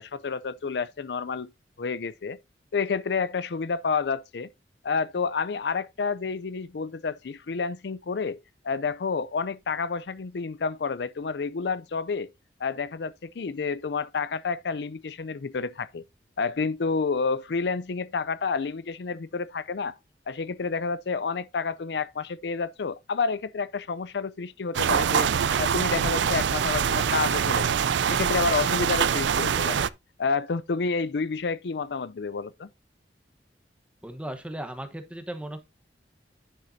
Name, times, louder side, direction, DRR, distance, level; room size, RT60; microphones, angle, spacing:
voice 1, 0.0-1.5 1.8-2.4 2.7-4.5 4.8-8.4 8.6-12.3 12.6-16.0 16.4-20.0 20.3-25.3 25.6-27.8 28.1-29.9 30.2-32.7, left 5 dB, 65° left, 0.5 m, -29 dB
sound 1, 24.7-29.9, right 7 dB, 85° right, 0.4 m, -24 dB
voice 2, 34.0-35.6, right 1 dB, 5° right, 1.1 m, -36 dB
10.0 x 6.6 x 2.7 m
head